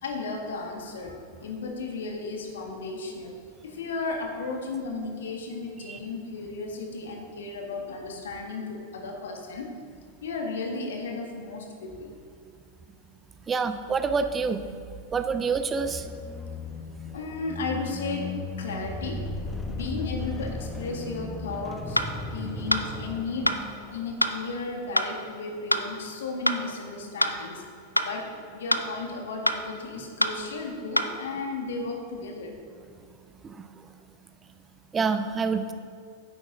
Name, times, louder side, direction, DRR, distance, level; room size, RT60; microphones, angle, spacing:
voice 1, 0.0-3.3 3.6-9.7 10.2-12.2 17.1-18.3 18.6-19.2 19.7-22.0 22.3-23.5 23.9-27.6 28.0-32.6, left 3 dB, 60° left, 3 dB, 1.5 m, -34 dB
voice 2, 13.5-14.6 15.1-16.1 33.5-33.7 34.9-35.6, right 5 dB, 20° right, 9 dB, 0.6 m, -27 dB
sound 1, 15.6-24.4, left 3 dB, 15° left, 0.9 m, -36 dB
sound 2, 22.0-22.1 22.7-22.9 23.5-23.6 24.2-24.4 25.0-25.1 25.7-25.8 26.5-26.6 27.2-27.4 28.0-28.1 28.7-28.9 29.5-29.6 30.2-30.4 31.0-31.1, equal, 85° left, 0.4 m, -24 dB
10.0 x 8.7 x 3.7 m, 2.2 s
figure-of-eight pair, 90°, 0 cm